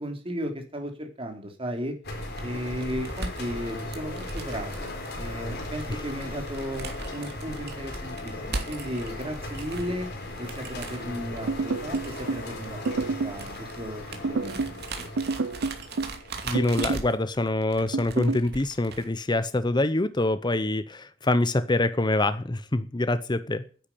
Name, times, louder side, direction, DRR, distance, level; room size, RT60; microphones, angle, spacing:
voice 1, 0.0-2.0 2.4-4.9 5.2-10.1 10.4-15.1, equal, 30° right, 4 dB, 3.2 m, -35 dB
sound 1, 2.0-17.5, left 1 dB, 55° left, 4.4 m, -37 dB
sound 2, 2.1-19.0, right 3 dB, 55° right, 2.6 m, -39 dB
sound 3, 11.5-12.5 12.9-13.4 14.2-14.8 15.2-16.2 16.5-17.1 17.9-18.5, right 4 dB, 75° right, 0.6 m, -28 dB
voice 2, 16.4-23.6, left 2 dB, 20° left, 12 dB, 0.7 m, -25 dB
10.5 x 8.6 x 8.5 m, 0.39 s
head